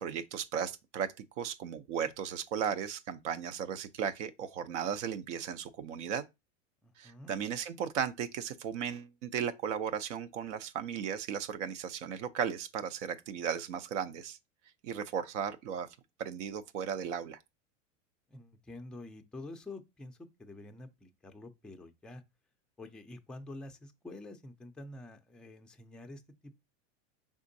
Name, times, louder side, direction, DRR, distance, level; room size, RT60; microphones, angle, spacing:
voice 1, 0.0-6.2 7.0-14.4 14.8-15.9 16.2-17.4, right 8 dB, 70° right, 0.6 m, -36 dB
voice 2, 6.8-7.4 18.3-22.2 22.8-26.5, left 2 dB, ahead, 0.4 m, -48 dB
4.9 x 3.6 x 2.6 m
hypercardioid pair, 95°, 38 cm